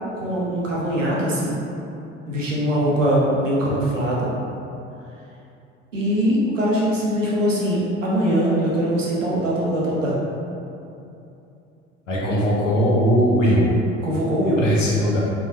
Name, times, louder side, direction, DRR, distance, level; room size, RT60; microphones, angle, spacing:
voice 1, 0.1-1.6 2.3-4.3 5.9-10.2 14.0-14.6, equal, 85° right, -6 dB, 0.7 m, -22 dB
voice 2, 12.1-13.6 14.6-15.2, equal, 80° left, -6 dB, 0.9 m, -19 dB
3.8 x 3.6 x 2.6 m, 2.8 s
figure-of-eight pair, 55°, 37 cm